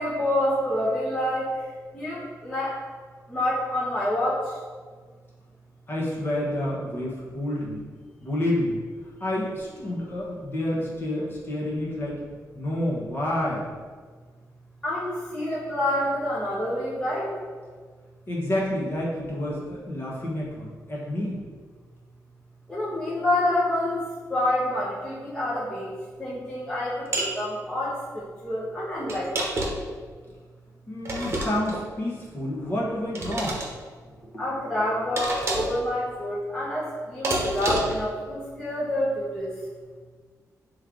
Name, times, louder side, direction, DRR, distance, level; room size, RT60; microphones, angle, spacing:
voice 1, 0.0-1.6 1.9-2.8 3.3-4.6 14.8-17.3 22.7-24.0 24.3-29.5 34.4-39.6, left 1 dB, 15° left, -8 dB, 1.0 m, -27 dB
voice 2, 5.9-7.8 8.2-8.8 9.2-12.2 12.5-13.6 18.3-21.4 30.9-33.6 34.2-34.4, left 1 dB, 35° left, -5 dB, 1.4 m, -29 dB
sound 1, 27.1-27.4 29.1-29.9 31.0-31.8 33.1-33.7 35.2-35.8 37.2-38.0, right 1 dB, 40° right, 1.0 m, -28 dB
7.7 x 3.3 x 3.8 m, 1.5 s
wide cardioid pair, 170°, 6 cm